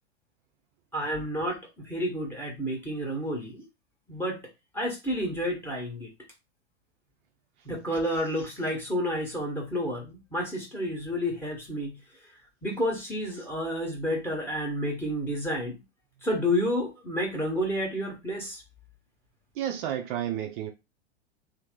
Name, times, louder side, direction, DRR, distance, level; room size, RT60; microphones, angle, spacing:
voice 1, 0.9-3.6 4.1-4.4 4.7-6.1 7.6-12.0 12.6-15.8 16.2-18.6, equal, 5° left, 1.2 m, -30 dB
voice 2, 19.5-20.7, right 10 dB, 50° right, 0.6 m, -31 dB
2.9 x 2.1 x 3.6 m
hypercardioid pair, 100°, 33 cm